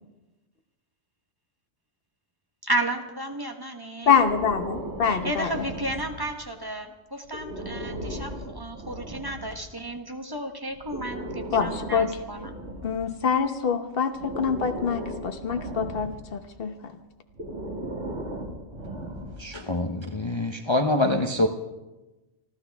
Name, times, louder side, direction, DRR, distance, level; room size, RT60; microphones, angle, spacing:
voice 1, 2.6-4.2 5.0-12.5, right 1 dB, 20° right, 5 dB, 1.2 m, -33 dB
Breathing, 4.0-6.5 7.2-9.6 10.7-13.5 14.1-16.4 17.3-19.6, right 1 dB, 80° right, 2.5 m, -37 dB
voice 2, 4.1-5.6 11.5-12.2 12.8-16.9, left 6 dB, 55° left, 6 dB, 1.3 m, -25 dB
voice 3, 19.4-21.5, left 1 dB, 30° left, 4 dB, 0.8 m, -25 dB
28.5 x 12.0 x 3.5 m, 1.1 s
omnidirectional pair, 1.2 m